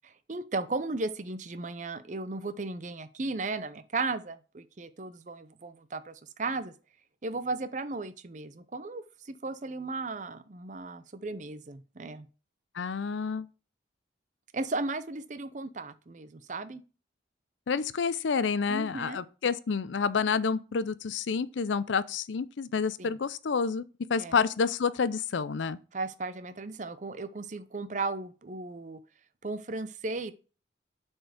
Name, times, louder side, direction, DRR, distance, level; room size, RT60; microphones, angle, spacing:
voice 1, 0.0-6.7 7.2-12.3 14.5-16.8 18.7-19.2 23.0-23.2 24.2-24.4 25.9-29.0 29.4-30.3, right 3 dB, 40° right, 0.6 m, -35 dB
voice 2, 12.8-13.5 17.7-23.8 24.1-25.8, left 5 dB, 85° left, 0.5 m, -29 dB
7.8 x 4.4 x 5.0 m
head